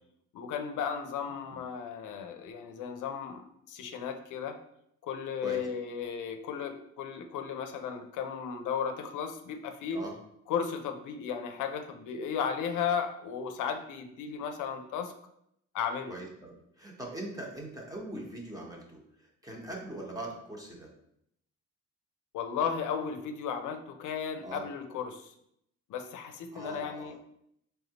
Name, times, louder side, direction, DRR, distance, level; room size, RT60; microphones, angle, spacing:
voice 1, 0.3-4.6 5.0-10.0 10.5-15.1 15.7-16.2 22.3-25.3 25.9-27.1, left 7 dB, 80° left, 6 dB, 0.6 m, -35 dB
voice 2, 16.1-19.0 19.4-20.9 24.4-24.6 26.5-27.1, right 1 dB, 10° right, -2 dB, 1.1 m, -41 dB
4.1 x 3.5 x 2.9 m, 0.74 s
cardioid pair, 90°, 30 cm